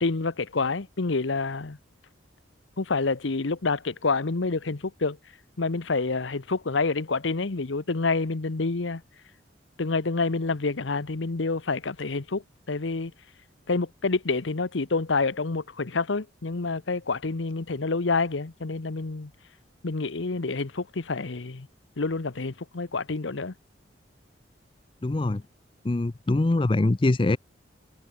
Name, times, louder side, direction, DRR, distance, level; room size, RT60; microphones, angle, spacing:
voice 1, 0.0-1.8 2.8-5.2 5.6-9.0 9.8-13.1 13.7-19.3 19.8-21.7 22.0-23.5, left 3 dB, 75° left, 0.9 m, -28 dB
voice 2, 25.0-25.4 25.8-27.4, left 2 dB, 25° left, 0.4 m, -23 dB
head